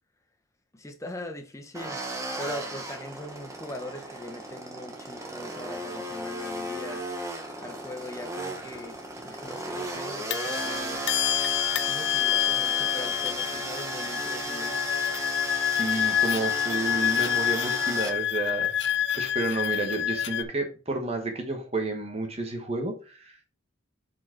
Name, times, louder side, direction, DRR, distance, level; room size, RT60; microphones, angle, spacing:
voice 1, 0.7-2.0 2.4-7.0 7.6-9.0 9.2-11.0 11.8-14.8, left 1 dB, 15° left, 1.0 m, -41 dB
sound 1, 1.7-18.1, right 1 dB, 15° right, 1.2 m, -35 dB
sound 2, 8.7-8.8 10.3-20.4, left 11 dB, 60° left, 0.6 m, -27 dB
voice 2, 15.5-18.7 19.2-23.5, right 2 dB, 30° right, 1.4 m, -31 dB
7.0 x 4.8 x 4.5 m
head